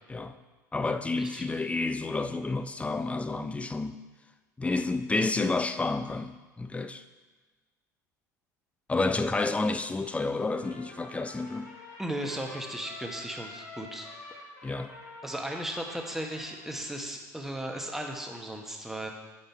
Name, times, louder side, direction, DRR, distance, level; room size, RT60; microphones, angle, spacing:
voice 1, 0.7-4.0 4.6-7.0 8.9-11.7 14.6-14.9, left 3 dB, 15° left, 10 dB, 0.5 m, -30 dB
Trumpet, 10.5-17.1, left 2 dB, 75° left, 1.6 m, -47 dB
voice 2, 12.0-14.1 15.2-19.1, right 1 dB, 5° right, 2 dB, 1.1 m, -36 dB
7.2 x 5.2 x 4.5 m, 1.3 s
hypercardioid pair, 70°, 10 cm